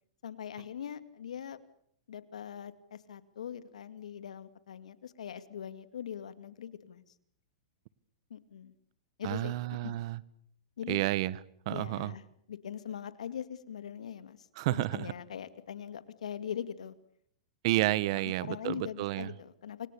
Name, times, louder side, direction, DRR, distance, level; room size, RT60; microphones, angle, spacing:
voice 1, 0.2-1.6 2.1-7.0 8.3-8.7 9.2-9.5 9.8-9.9 10.8-11.1 11.7-16.9 18.2-19.9, left 9 dB, 80° left, 13 dB, 2.3 m, -41 dB
voice 2, 9.2-10.2 10.9-11.4 11.6-12.1 14.6-15.1 17.6-19.3, right 16 dB, 55° right, 19 dB, 1.4 m, -30 dB
29.0 x 23.5 x 7.0 m, 0.69 s
hypercardioid pair, 125°, 4 cm